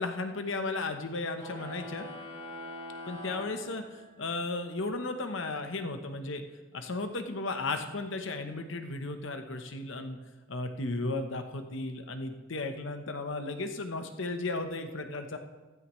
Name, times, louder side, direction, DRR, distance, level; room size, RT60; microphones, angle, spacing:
voice 1, 0.0-2.1 3.1-6.4 6.7-10.2 10.5-15.4, left 2 dB, 65° left, 7 dB, 1.0 m, -35 dB
sound 1, 1.3-4.3, left 1 dB, 30° left, 3.5 m, -43 dB
15.0 x 13.0 x 3.2 m, 1.2 s
head